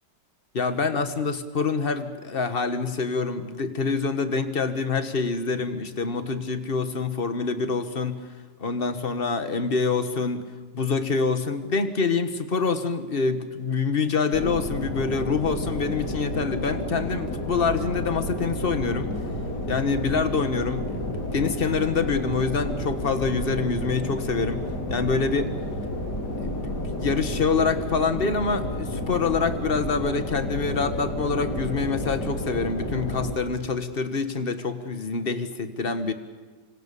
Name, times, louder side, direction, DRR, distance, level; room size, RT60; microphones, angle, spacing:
voice 1, 0.5-8.2 8.6-10.5 10.7-19.1 19.7-24.6 24.9-25.5 26.4-36.1, left 4 dB, 35° left, 10 dB, 1.5 m, -26 dB
sound 1, 14.3-33.4, left 1 dB, 65° left, 3.9 m, -31 dB
26.0 x 25.5 x 6.9 m, 1.4 s
omnidirectional pair, 2.0 m